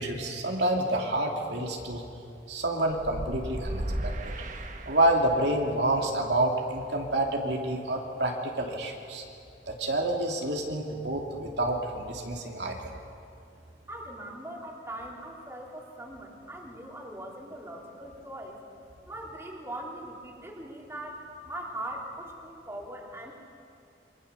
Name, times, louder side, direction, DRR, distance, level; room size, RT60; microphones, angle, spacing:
voice 1, 0.0-2.0 2.5-4.3 4.9-9.2 9.7-12.8, right 1 dB, 70° right, 1 dB, 2.8 m, -28 dB
sound 1, 3.0-5.5, right 1 dB, 45° right, 1.4 m, -35 dB
voice 2, 13.9-18.6 19.0-23.3, right 1 dB, 15° right, -2 dB, 3.6 m, -41 dB
27.5 x 24.0 x 7.0 m, 2.6 s
head